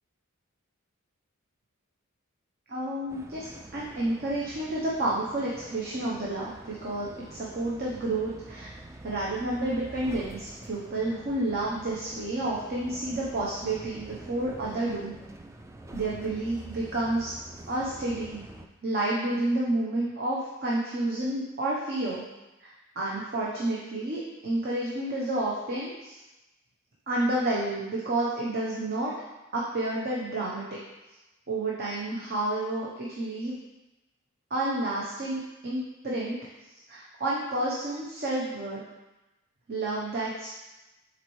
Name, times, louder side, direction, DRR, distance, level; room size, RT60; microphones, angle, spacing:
voice 1, 2.7-8.7 9.0-15.1 15.9-17.3 17.7-18.4 18.8-22.2 22.6-26.2 27.1-29.1 29.5-30.8 31.5-33.6 34.5-36.4 36.9-38.8 39.7-40.5, right 2 dB, 50° right, -5 dB, 0.8 m, -30 dB
sound 1, 3.1-18.7, right 1 dB, 15° right, 0.3 m, -46 dB
7.3 x 4.2 x 3.1 m, 1.1 s
head